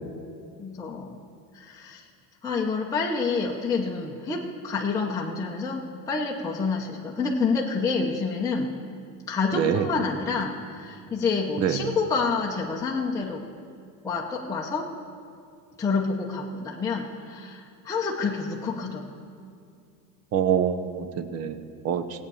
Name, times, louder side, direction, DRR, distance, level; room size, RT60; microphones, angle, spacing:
voice 1, 0.6-1.2 1.5-2.0 2.4-8.7 9.3-13.4 14.0-14.9 15.8-19.1, left 4 dB, 10° left, -3 dB, 0.9 m, -28 dB
voice 2, 9.5-9.9 11.6-11.9 20.3-21.6 21.8-22.0, right 8 dB, 35° right, 11 dB, 0.8 m, -25 dB
16.0 x 8.6 x 7.0 m, 2.3 s
cardioid pair, 145°, 41 cm